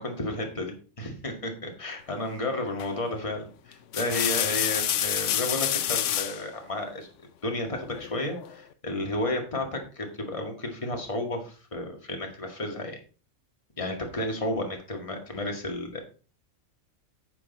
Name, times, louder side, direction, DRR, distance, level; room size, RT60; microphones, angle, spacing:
voice 1, 0.0-7.1 7.4-13.0 13.8-16.0, left 1 dB, 25° left, 2 dB, 1.9 m, -32 dB
sound 1, 2.8-3.1 3.7-6.4 7.9-8.5, left 11 dB, 75° left, 1.0 m, -28 dB
9.6 x 8.3 x 4.0 m, 0.36 s
omnidirectional pair, 1.3 m